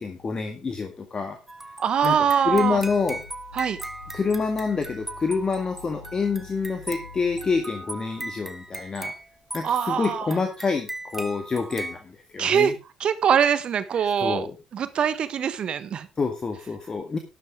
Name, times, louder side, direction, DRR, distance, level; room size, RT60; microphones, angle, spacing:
voice 1, 0.0-1.4 2.0-2.2 2.5-3.2 4.1-9.1 9.5-12.7 13.9-14.5 16.2-17.2, left 4 dB, 30° left, 6 dB, 1.9 m, -27 dB
sound 1, 1.5-12.0, right 2 dB, 10° right, 1.5 m, -39 dB
voice 2, 1.8-2.8 3.5-3.8 9.6-10.3 12.4-12.7 13.0-14.5 14.7-16.1, right 8 dB, 45° right, 13 dB, 1.3 m, -23 dB
sound 2, 2.4-7.6, left 8 dB, 90° left, 1.0 m, -46 dB
12.5 x 10.5 x 3.6 m, 0.27 s
figure-of-eight pair, 50°, 2 cm